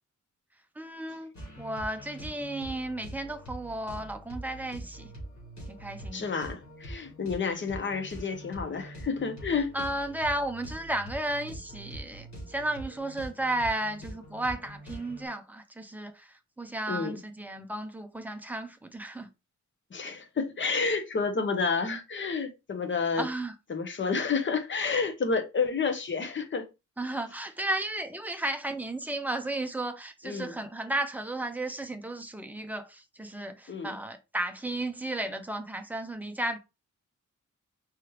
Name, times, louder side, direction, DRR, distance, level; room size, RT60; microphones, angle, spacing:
voice 1, 0.8-5.1 5.7-6.3 9.7-19.3 23.2-23.5 27.0-36.6, right 1 dB, 5° right, 0.5 m, -34 dB
sound 1, 1.3-15.3, equal, 65° left, 2.8 m, -44 dB
voice 2, 6.1-9.8 16.9-17.2 19.9-23.3 23.7-26.6 30.2-30.5 33.7-33.9, left 5 dB, 40° left, 0.8 m, -30 dB
4.9 x 3.0 x 3.1 m
wide cardioid pair, 165°, 31 cm